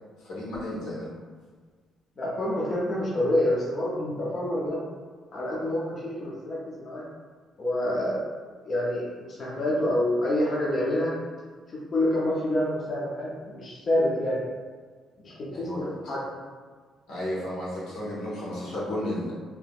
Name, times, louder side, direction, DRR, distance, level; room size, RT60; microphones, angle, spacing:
voice 1, 0.2-1.1 15.5-15.9 17.1-19.3, left 1 dB, 80° left, -7 dB, 1.2 m, -33 dB
voice 2, 2.2-4.8 5.3-7.0 7.6-8.2 8.6-11.1 11.7-14.4 15.2-16.2, left 1 dB, 30° left, -6 dB, 0.6 m, -27 dB
3.6 x 2.8 x 2.4 m, 1.5 s
cardioid pair, 180°, 0 cm